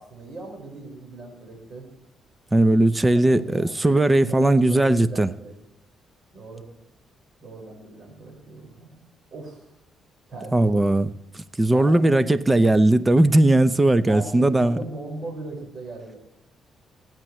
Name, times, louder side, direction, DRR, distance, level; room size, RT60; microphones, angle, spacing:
voice 1, 0.0-1.9 3.1-3.8 4.2-5.6 6.3-6.6 7.4-8.9 9.3-9.7 10.3-10.7 11.7-12.2 14.1-16.2, right 2 dB, 50° right, 5.5 m, -38 dB
voice 2, 2.5-5.3 10.5-11.1 11.3-14.8, right 1 dB, 15° right, 0.7 m, -18 dB
25.0 x 9.1 x 3.2 m
cardioid pair, 90°, 0 cm